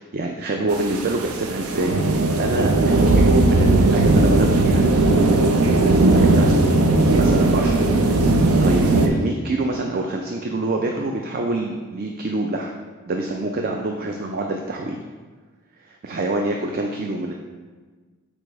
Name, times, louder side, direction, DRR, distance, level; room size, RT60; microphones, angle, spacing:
voice 1, 0.0-12.7 13.1-15.0 15.8-17.3, right 2 dB, 40° right, 2 dB, 0.4 m, -26 dB
sound 1, 0.7-9.1, right 2 dB, 85° right, 0.6 m, -17 dB
5.0 x 4.2 x 4.6 m, 1.4 s
head